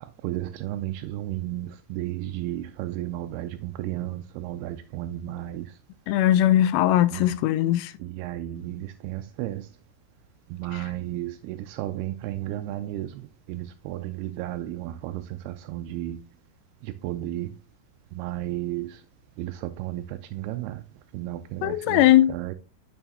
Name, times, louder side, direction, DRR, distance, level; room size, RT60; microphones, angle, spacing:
voice 1, 0.2-5.6 7.1-7.2 8.0-9.6 10.5-13.1 13.5-16.2 17.0-17.5 18.2-18.9 19.4-20.0 20.3-20.8 21.1-22.0 22.3-22.6, right 14 dB, 85° right, 2.2 m, -33 dB
voice 2, 6.1-7.9 10.7-10.8 21.6-22.3, left 13 dB, 80° left, 2.6 m, -20 dB
9.1 x 6.3 x 2.8 m
omnidirectional pair, 5.0 m